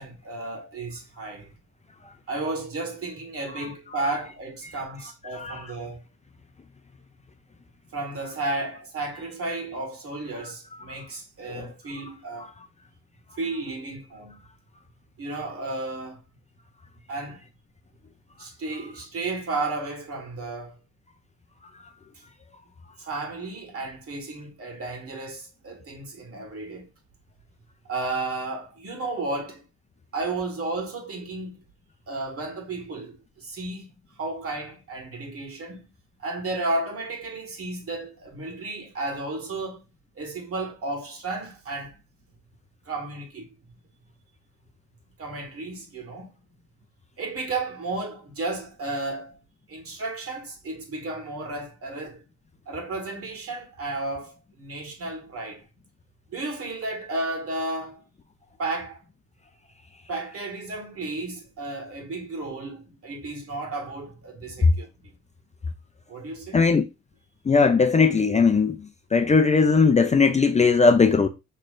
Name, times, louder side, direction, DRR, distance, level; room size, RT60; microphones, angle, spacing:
voice 1, 0.0-1.5 2.3-6.0 7.9-12.5 13.4-14.4 15.2-16.2 17.1-17.5 18.4-20.8 23.0-26.9 27.9-29.6 30.1-31.6 32.1-35.9 36.2-39.8 40.2-41.9 42.9-43.5 45.2-46.3 47.2-49.4 49.7-52.2 52.7-55.6 56.3-58.0 58.6-59.0 60.1-65.1 66.1-66.6, right 2 dB, 50° right, 1.9 m, -33 dB
voice 2, 66.5-66.8 67.5-68.8 69.1-71.3, left 4 dB, 25° left, 0.5 m, -18 dB
6.0 x 3.3 x 2.5 m
cardioid pair, 90°, 30 cm